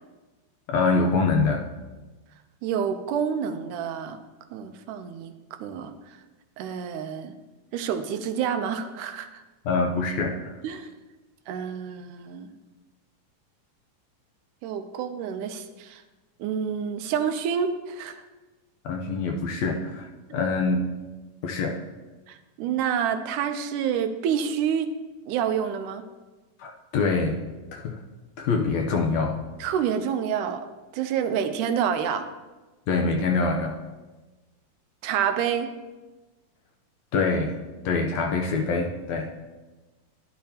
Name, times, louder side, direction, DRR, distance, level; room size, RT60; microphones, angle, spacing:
voice 1, 0.7-1.6 9.6-10.6 18.8-20.9 21.4-21.8 26.6-27.4 27.7-28.0 28.4-29.4 32.9-33.8 37.1-37.6 37.8-39.3, left 4 dB, 75° left, 2 dB, 1.8 m, -25 dB
voice 2, 2.6-4.2 4.5-6.2 6.6-7.3 7.7-9.4 10.6-10.9 11.5-12.5 14.6-16.0 16.4-18.2 22.3-24.9 25.3-26.0 29.6-32.3 35.0-35.7, right 8 dB, 80° right, 8 dB, 2.1 m, -28 dB
12.0 x 10.5 x 2.8 m, 1.2 s
omnidirectional pair, 3.7 m